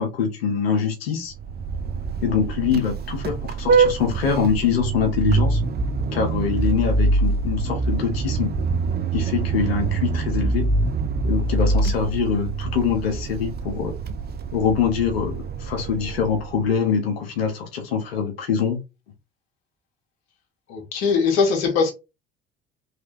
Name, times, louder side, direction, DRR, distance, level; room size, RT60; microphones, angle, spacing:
voice 1, 0.0-1.3 2.2-5.6 6.1-8.5 9.1-10.7 11.2-13.9 14.5-18.8, left 6 dB, 80° left, 1.1 m, -24 dB
Vehicle horn car horn honking, 1.3-16.7, right 3 dB, 35° right, 0.7 m, -24 dB
voice 2, 20.7-21.9, left 5 dB, 65° left, 1.7 m, -20 dB
3.4 x 3.3 x 2.9 m
figure-of-eight pair, 55°, 30 cm